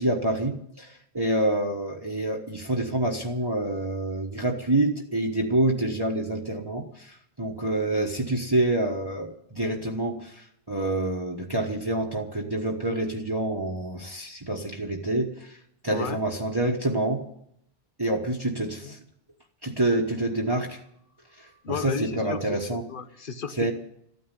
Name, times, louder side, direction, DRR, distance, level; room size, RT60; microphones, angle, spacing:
voice 1, 0.0-15.6 15.8-17.3 18.0-19.0 19.6-20.8 21.4-22.8 23.6-23.7, right 1 dB, 25° right, -1 dB, 1.3 m, -27 dB
voice 2, 15.9-16.2 18.8-18.9 21.6-23.7, left 6 dB, 55° left, 10 dB, 1.2 m, -33 dB
14.5 x 9.3 x 9.9 m, 0.73 s
omnidirectional pair, 1.1 m